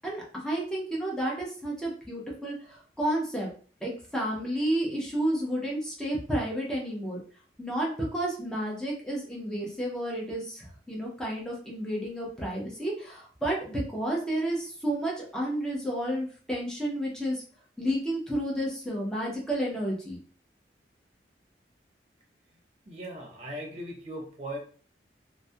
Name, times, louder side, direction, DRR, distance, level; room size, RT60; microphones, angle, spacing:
voice 1, 0.0-3.5 3.8-7.2 7.6-17.4 17.8-20.2, right 1 dB, 5° left, -3 dB, 0.6 m, -31 dB
voice 2, 22.8-24.6, equal, 35° right, -2 dB, 0.8 m, -38 dB
2.3 x 2.1 x 2.6 m, 0.43 s
head